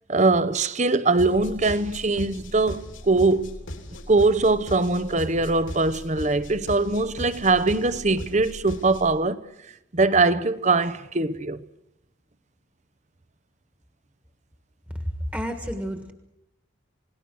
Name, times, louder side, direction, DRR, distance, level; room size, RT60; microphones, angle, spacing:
voice 1, 0.1-3.6 4.1-9.4 9.9-11.6, right 3 dB, 35° right, 0.8 m, -22 dB
sound 1, 1.2-9.2, left 1 dB, 90° left, 3.6 m, -38 dB
voice 2, 15.0-16.1, equal, 10° right, 1.5 m, -30 dB
28.0 x 18.5 x 6.2 m
head